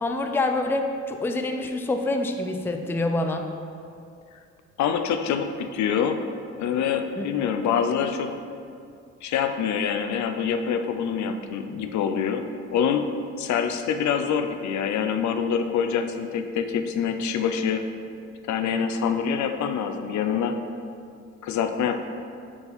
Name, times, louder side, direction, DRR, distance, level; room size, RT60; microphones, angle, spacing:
voice 1, 0.0-3.5 7.2-7.3, left 2 dB, 10° left, 5 dB, 0.3 m, -26 dB
voice 2, 4.8-6.2 6.6-8.3 9.2-17.8 18.5-20.6 21.4-22.0, left 7 dB, 70° left, 7 dB, 0.5 m, -25 dB
4.5 x 4.2 x 5.1 m, 2.4 s
cardioid pair, 90°, 30 cm